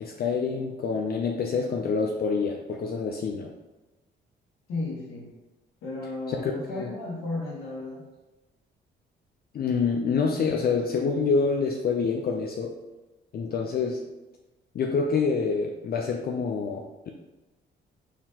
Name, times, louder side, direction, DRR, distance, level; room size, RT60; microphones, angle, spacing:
voice 1, 0.0-3.5 6.3-6.9 9.5-12.7 13.3-14.0 14.7-17.1, left 5 dB, 50° left, 1 dB, 0.5 m, -27 dB
voice 2, 4.7-5.3 5.8-8.0, left 2 dB, 85° left, -4 dB, 1.5 m, -34 dB
4.8 x 3.6 x 2.9 m, 1.1 s
cardioid pair, 90°, 20 cm